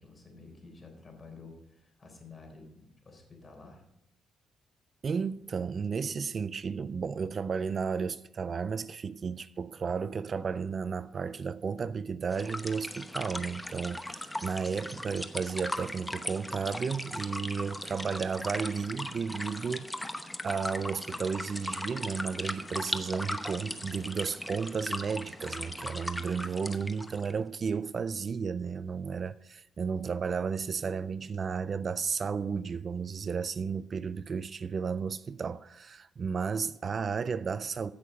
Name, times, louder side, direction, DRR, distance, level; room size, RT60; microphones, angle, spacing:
voice 1, 0.0-3.8, left 3 dB, 30° left, 3.9 m, -51 dB
voice 2, 5.0-20.1 20.4-37.9, right 5 dB, 45° right, 0.4 m, -33 dB
sound 1, 12.3-27.3, left 1 dB, 10° left, 0.9 m, -38 dB
15.5 x 6.4 x 5.0 m
cardioid pair, 90°, 0 cm